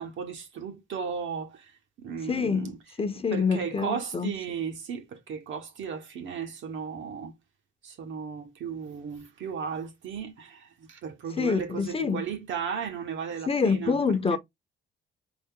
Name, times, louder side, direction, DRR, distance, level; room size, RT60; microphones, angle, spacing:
voice 1, 0.0-1.7 2.0-2.8 3.3-7.3 7.8-14.0 14.3-14.4, right 7 dB, 75° right, 1.3 m, -35 dB
voice 2, 2.3-2.7 3.0-4.3 11.3-12.3 13.5-14.4, left 5 dB, 30° left, 0.7 m, -26 dB
4.0 x 3.4 x 3.7 m
cardioid pair, 90°, 20 cm